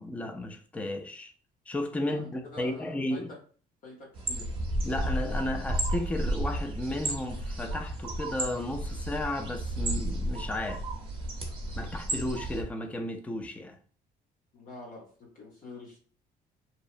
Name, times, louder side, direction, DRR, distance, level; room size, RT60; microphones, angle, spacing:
voice 1, 0.0-1.3 1.7-3.3 4.8-10.8 11.8-13.8, left 1 dB, 10° left, 0.3 m, -34 dB
voice 2, 2.0-3.4 3.8-4.5 14.5-16.0, left 2 dB, 55° left, 0.7 m, -46 dB
sound 1, 4.1-12.6, right 1 dB, 30° right, 0.8 m, -33 dB
2.7 x 2.0 x 2.4 m
cardioid pair, 110°, 17 cm